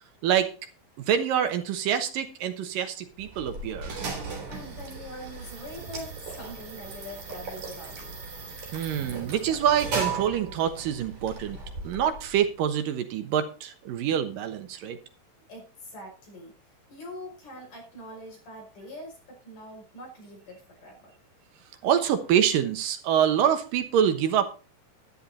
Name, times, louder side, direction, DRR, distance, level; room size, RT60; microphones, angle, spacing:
voice 1, 1.1-4.0 8.7-11.6 11.8-15.0 21.8-24.5, right 9 dB, 75° right, 8 dB, 2.8 m, -26 dB
sound 1, 3.2-12.5, right 4 dB, 50° right, 4.6 m, -37 dB
voice 2, 4.5-8.2 15.5-16.5 16.9-21.1, equal, 60° left, 0 dB, 7.1 m, -43 dB
11.5 x 11.0 x 4.2 m, 0.35 s
omnidirectional pair, 4.1 m